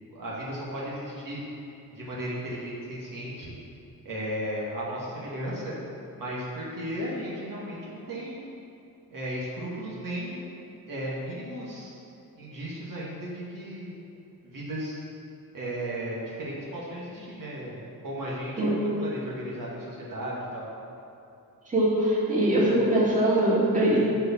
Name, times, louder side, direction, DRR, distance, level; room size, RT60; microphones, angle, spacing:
voice 1, 0.1-1.4 1.9-3.5 4.0-5.7 6.1-8.5 9.1-10.4 10.9-11.9 12.4-13.9 14.4-15.0 15.5-20.7, right 1 dB, 60° right, -6 dB, 2.1 m, -35 dB
voice 2, 21.7-24.0, right 1 dB, 20° right, -7 dB, 2.6 m, -22 dB
11.5 x 4.8 x 7.3 m, 2.9 s
wide cardioid pair, 145°, 36 cm